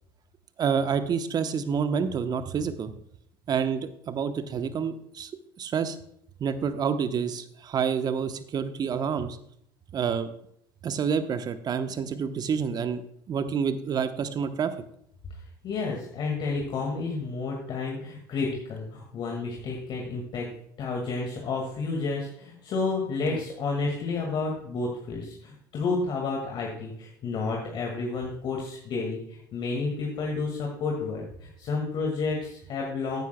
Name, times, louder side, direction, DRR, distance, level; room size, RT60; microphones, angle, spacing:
voice 1, 0.6-2.9 3.5-5.3 5.6-6.0 6.4-9.4 9.9-10.3 10.8-13.0 13.3-14.7 23.2-23.4, right 6 dB, 40° right, 10 dB, 0.9 m, -28 dB
voice 2, 15.6-20.5 20.8-33.2, left 4 dB, 50° left, 0 dB, 1.9 m, -31 dB
15.0 x 9.4 x 2.2 m, 0.70 s
hypercardioid pair, 70°, 11 cm